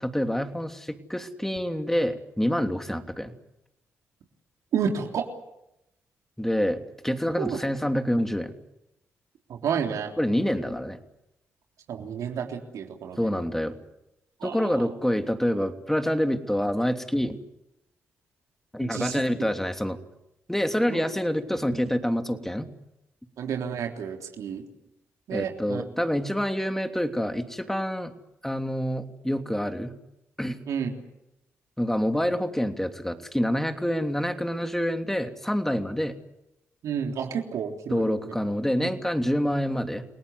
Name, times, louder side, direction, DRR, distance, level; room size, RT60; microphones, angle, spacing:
voice 1, 0.0-3.3 6.4-8.5 10.2-11.0 13.2-13.8 14.4-17.4 18.7-20.0 20.5-22.7 25.3-28.1 28.4-29.9 30.4-30.6 31.8-36.1 37.9-40.1, equal, 5° left, 6 dB, 3.1 m, -27 dB
voice 2, 4.7-5.3 7.4-7.6 9.5-10.1 11.9-13.3 14.4-14.7 18.8-19.2 20.9-21.0 23.4-24.6 25.3-25.8 30.7-30.9 36.8-38.4 38.8-38.9, right 7 dB, 75° right, 3 dB, 3.5 m, -30 dB
29.5 x 18.5 x 8.1 m, 0.86 s
supercardioid pair, 50°, 6 cm